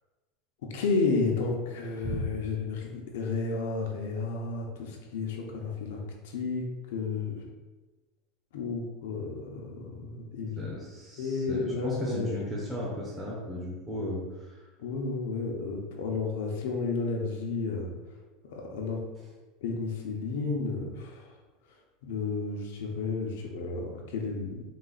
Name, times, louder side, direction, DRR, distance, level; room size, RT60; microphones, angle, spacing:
voice 1, 0.6-7.4 8.5-10.6 11.2-12.3 14.8-17.9 18.5-19.0 19.6-21.3 22.0-24.6, left 4 dB, 80° left, 0 dB, 0.8 m, -32 dB
voice 2, 10.6-14.5, left 1 dB, 10° right, -5 dB, 0.7 m, -35 dB
4.0 x 2.5 x 3.9 m, 1.2 s
supercardioid pair, 165°, 0 cm